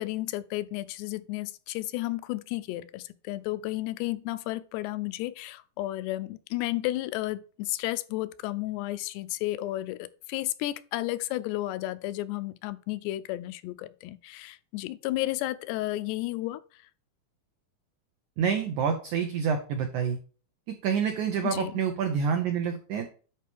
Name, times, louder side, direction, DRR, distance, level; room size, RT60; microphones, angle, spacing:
voice 1, 0.0-16.6 21.4-21.7, left 17 dB, 85° left, 2.7 m, -32 dB
voice 2, 18.4-20.2 20.7-23.1, right 7 dB, 90° right, 1.7 m, -28 dB
10.5 x 4.6 x 3.4 m
omnidirectional pair, 4.8 m